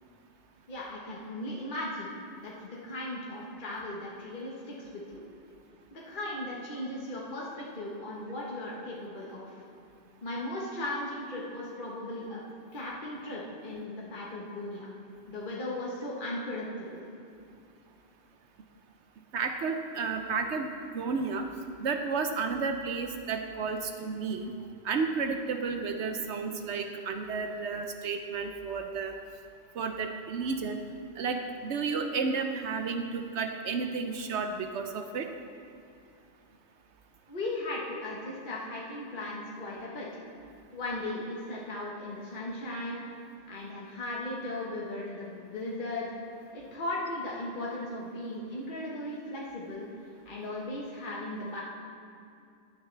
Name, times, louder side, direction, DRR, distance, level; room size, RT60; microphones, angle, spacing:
voice 1, 0.7-2.1 2.4-5.2 5.9-9.5 10.2-12.4 12.7-14.9 15.3-17.0 37.3-40.1 40.7-43.0 43.5-46.1 46.5-49.9 50.2-51.6, left 1 dB, 45° left, -5 dB, 1.5 m, -37 dB
voice 2, 19.3-21.5 21.8-24.5 24.8-29.1 29.8-30.8 31.2-35.3, right 4 dB, 75° right, 6 dB, 1.0 m, -32 dB
14.5 x 9.6 x 3.3 m, 2.5 s
omnidirectional pair, 1.2 m